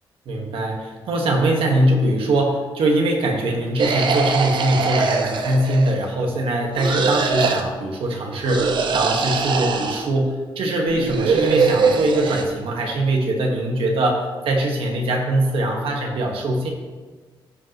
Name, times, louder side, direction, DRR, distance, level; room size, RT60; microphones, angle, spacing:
voice 1, 0.2-16.7, right 1 dB, 85° right, 1 dB, 1.5 m, -22 dB
sound 1, 3.8-6.1 6.8-7.6 8.4-10.1 10.9-12.4, right 5 dB, 60° right, 0.7 m, -22 dB
14.5 x 5.4 x 3.0 m, 1.4 s
wide cardioid pair, 140°, 9 cm